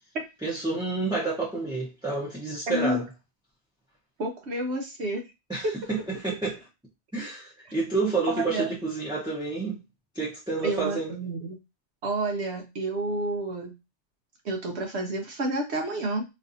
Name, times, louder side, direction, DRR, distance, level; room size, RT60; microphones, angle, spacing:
voice 1, 0.4-3.1 5.5-6.6 7.1-9.8 10.1-11.1, right 3 dB, 5° right, 0.7 m, -29 dB
voice 2, 2.7-3.0 4.2-5.2 5.6-5.8 8.3-8.7 10.6-11.6 12.0-13.7 14.4-16.2, right 1 dB, 75° right, 1.0 m, -29 dB
4.1 x 2.5 x 2.6 m
omnidirectional pair, 1.2 m